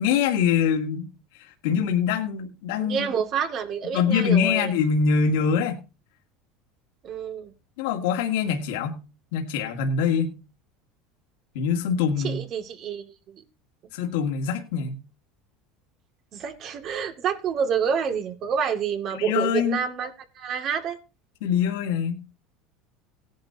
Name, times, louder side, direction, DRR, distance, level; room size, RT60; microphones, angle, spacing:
voice 1, 0.0-3.1 3.9-5.8 7.8-9.0 9.3-10.4 11.5-12.4 13.9-15.0 19.1-19.8 21.4-22.2, left 7 dB, 80° left, 2 dB, 2.2 m, -24 dB
voice 2, 2.8-4.7 7.0-7.5 12.2-13.0 16.3-20.1 20.4-21.0, right 7 dB, 45° right, 6 dB, 2.4 m, -28 dB
17.0 x 10.5 x 2.9 m, 0.30 s
supercardioid pair, 120°, 0 cm